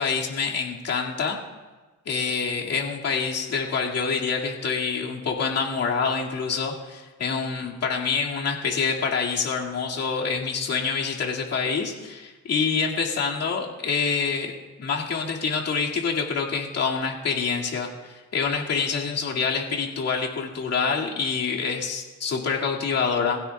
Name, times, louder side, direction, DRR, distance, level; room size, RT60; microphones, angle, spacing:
voice 1, 0.0-1.4 2.1-14.5 14.8-23.4, left 5 dB, 55° left, -2 dB, 2.3 m, -26 dB
23.5 x 16.0 x 2.4 m, 1.3 s
cardioid pair, 90°, 30 cm